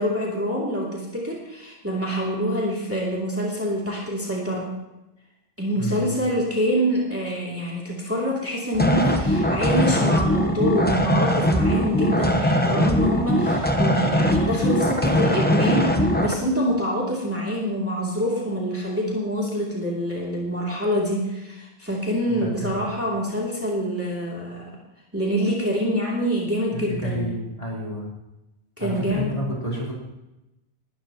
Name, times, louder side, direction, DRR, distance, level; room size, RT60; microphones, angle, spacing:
voice 1, 0.0-4.6 5.6-24.7 25.1-27.3 28.8-29.4, equal, 10° right, -4 dB, 2.8 m, -26 dB
voice 2, 5.8-6.2 22.3-22.8 26.7-28.1 28.8-29.9, right 1 dB, 35° left, -4 dB, 3.8 m, -30 dB
sound 1, 8.7-16.3, equal, 10° left, 1.0 m, -21 dB
19.0 x 13.0 x 3.0 m, 0.96 s
omnidirectional pair, 1.1 m